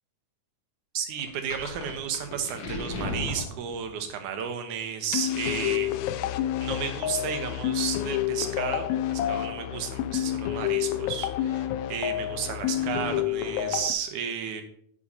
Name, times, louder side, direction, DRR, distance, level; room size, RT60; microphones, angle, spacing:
voice 1, 0.9-6.3 6.6-14.6, right 8 dB, 90° right, 6 dB, 2.5 m, -33 dB
sound 1, 1.2-4.1, left 2 dB, 55° left, 2.1 m, -36 dB
sound 2, 5.1-13.9, left 12 dB, 80° left, 1.8 m, -29 dB
10.0 x 8.4 x 2.8 m, 0.67 s
omnidirectional pair, 3.4 m